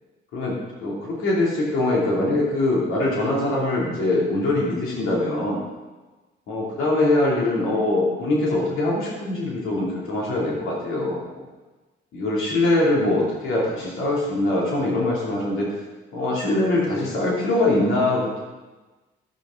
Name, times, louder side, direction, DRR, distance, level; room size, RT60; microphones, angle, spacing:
voice 1, 0.8-5.6 6.5-11.2 12.1-15.7 16.1-18.4, left 2 dB, 85° left, -4 dB, 2.9 m, -22 dB
11.5 x 9.3 x 3.8 m, 1.2 s
cardioid pair, 90°, 20 cm